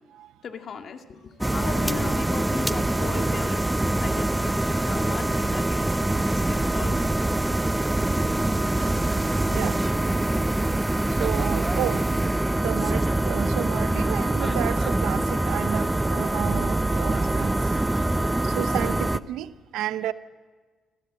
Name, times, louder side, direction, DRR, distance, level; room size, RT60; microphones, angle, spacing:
voice 1, 0.4-5.9 6.3-7.1, left 6 dB, 55° left, 2.0 m, -38 dB
sound 1, 1.4-19.2, right 2 dB, 10° right, 0.7 m, -24 dB
voice 2, 8.8-9.8 11.2-12.3 12.6-17.6 18.4-20.1, right 12 dB, 90° right, 0.8 m, -32 dB
25.5 x 16.5 x 7.7 m
cardioid pair, 90°, 0 cm